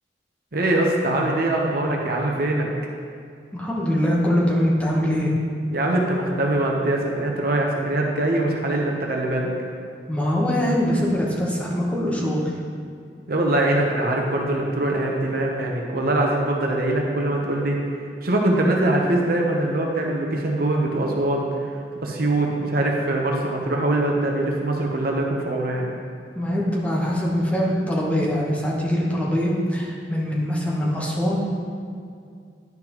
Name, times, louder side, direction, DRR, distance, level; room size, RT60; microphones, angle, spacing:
voice 1, 0.5-2.7 5.7-9.5 13.3-17.8 18.2-21.5 22.0-25.8, right 1 dB, 60° right, 0 dB, 0.9 m, -22 dB
voice 2, 3.5-5.3 10.1-12.5 26.3-31.4, equal, 10° left, -5 dB, 1.1 m, -23 dB
10.5 x 5.8 x 3.0 m, 2.3 s
head